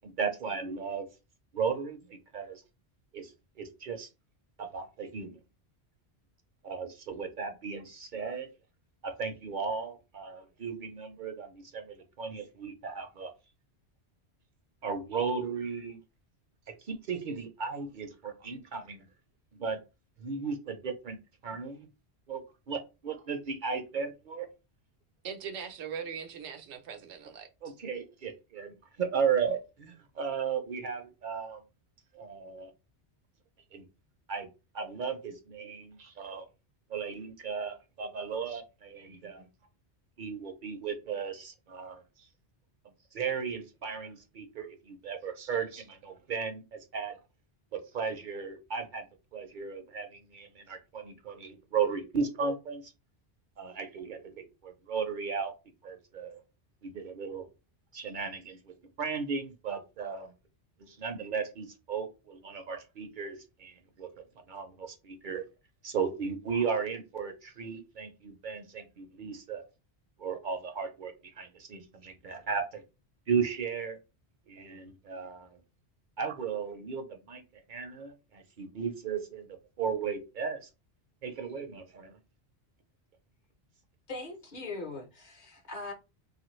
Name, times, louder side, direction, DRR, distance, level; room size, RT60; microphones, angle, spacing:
voice 1, 0.0-1.1 1.5-2.6 3.1-3.3 3.6-4.1 4.6-5.4 6.6-8.5 9.0-13.3 14.8-16.0 16.7-19.0 19.5-19.8 20.2-21.9 22.3-24.5 27.6-31.6 32.1-32.7 33.7-33.8 34.3-34.5 34.7-36.5 36.9-39.5 40.2-42.3 43.1-47.2 47.7-49.1 49.3-52.9 53.6-55.5 55.8-56.4 56.8-57.5 57.9-60.3 60.8-64.1 64.5-65.4 65.8-69.7 70.2-72.8 73.3-74.0 74.5-75.6 76.2-80.7 81.2-82.1, right 6 dB, 55° right, 0.6 m, -35 dB
voice 2, 25.2-27.5, right 7 dB, 90° right, 0.9 m, -40 dB
voice 3, 84.1-85.9, left 3 dB, 50° left, 0.7 m, -40 dB
2.9 x 2.5 x 3.0 m
omnidirectional pair, 1.1 m